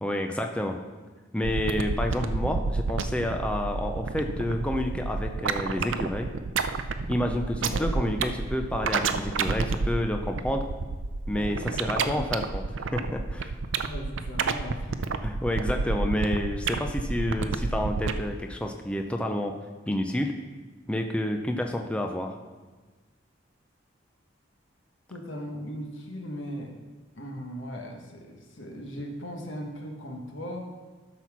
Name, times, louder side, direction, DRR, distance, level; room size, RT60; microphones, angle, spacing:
voice 1, 0.0-0.8 1.3-6.3 7.1-10.7 11.3-13.5 15.2-19.5 19.9-20.3 20.9-22.3, left 1 dB, 5° left, 3 dB, 0.5 m, -29 dB
sound 1, 1.4-18.2, right 4 dB, 85° right, 0.5 m, -29 dB
voice 2, 7.8-8.2 11.3-12.2 13.8-15.2 25.1-26.8 27.2-30.6, equal, 85° left, 2 dB, 1.4 m, -38 dB
12.5 x 4.3 x 6.0 m, 1.3 s
head